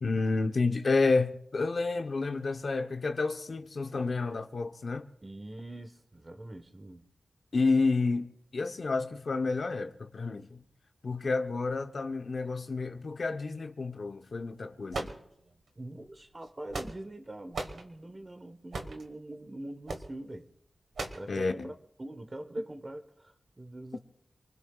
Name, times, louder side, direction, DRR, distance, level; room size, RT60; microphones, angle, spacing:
voice 1, 0.0-5.1 7.5-10.6 11.0-15.1 21.3-21.7, left 3 dB, 65° left, 0.9 m, -30 dB
voice 2, 5.2-7.1 15.7-20.5 21.1-24.0, right 1 dB, 30° right, 1.3 m, -43 dB
sound 1, 14.9-15.7 16.4-17.2 17.5-17.8 18.7-19.1 19.9-20.1 21.0-21.3, right 3 dB, 85° right, 1.4 m, -37 dB
28.0 x 20.0 x 2.4 m
cardioid pair, 60°, 0 cm